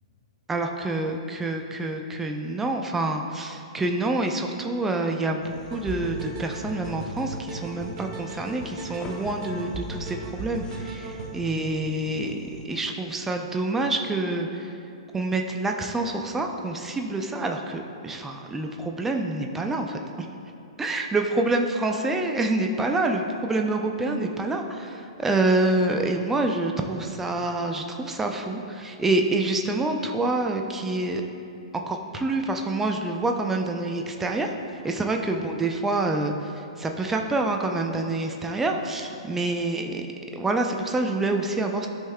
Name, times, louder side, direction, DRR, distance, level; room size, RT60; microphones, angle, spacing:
voice 1, 0.5-14.8 15.1-20.3 20.8-31.2 31.7-34.6 34.8-40.1 40.3-41.9, right 2 dB, 10° right, 3 dB, 0.5 m, -27 dB
sound 1, 5.4-12.7, left 3 dB, 20° left, 0.8 m, -45 dB
sound 2, 5.6-11.3, right 2 dB, 45° right, 1.5 m, -37 dB
13.0 x 5.4 x 2.2 m, 2.7 s
hypercardioid pair, 115°, 3 cm